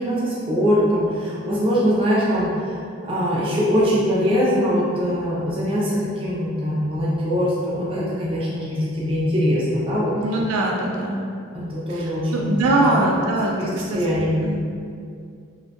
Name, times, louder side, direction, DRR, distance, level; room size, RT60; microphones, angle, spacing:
voice 1, 0.0-10.2 11.5-12.9 13.6-14.4, equal, 25° right, -7 dB, 0.5 m, -22 dB
voice 2, 10.2-11.3 11.9-13.6 13.9-14.0 14.4-14.6, right 2 dB, 90° right, -1 dB, 0.4 m, -22 dB
2.5 x 2.1 x 2.7 m, 2.3 s
head